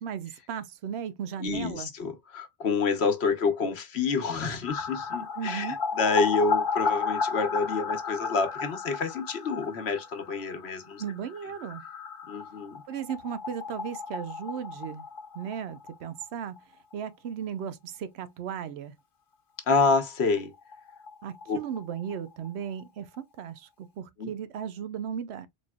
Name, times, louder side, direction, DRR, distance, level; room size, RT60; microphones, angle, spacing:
voice 1, 0.0-1.9 5.4-5.8 11.0-11.8 12.9-15.1 15.3-16.6 16.9-18.9 21.2-25.5, right 8 dB, 85° right, 0.9 m, -36 dB
voice 2, 1.4-11.0 12.3-12.8 19.7-20.5 21.5-21.6 24.2-24.3, left 4 dB, 80° left, 1.2 m, -28 dB
sound 1, 4.7-16.2 16.6-16.7 16.9-17.0 20.0-20.1 20.4-20.5 20.7-22.5 22.8-22.9, left 5 dB, 60° left, 1.0 m, -33 dB
4.1 x 3.3 x 2.2 m
omnidirectional pair, 1.1 m